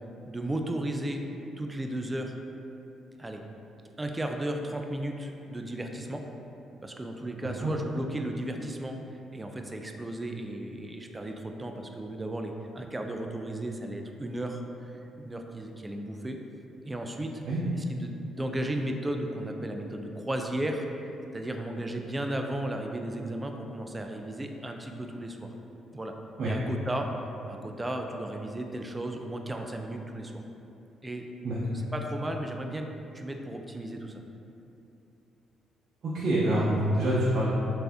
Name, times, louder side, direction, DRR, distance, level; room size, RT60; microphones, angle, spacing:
voice 1, 0.2-1.2 1.6-2.3 3.2-3.4 4.0-6.3 6.8-9.0 9.3-16.4 16.8-17.4 17.7-20.9 21.3-25.5 25.9-26.2 26.4-27.1 27.5-30.4 31.0-31.3 31.7-32.9 33.1-34.2, right 1 dB, 20° right, 4 dB, 0.3 m, -34 dB
voice 2, 36.0-37.5, right 1 dB, 60° right, -7 dB, 0.6 m, -26 dB
3.3 x 2.6 x 3.4 m, 2.8 s
supercardioid pair, 75°, 0 cm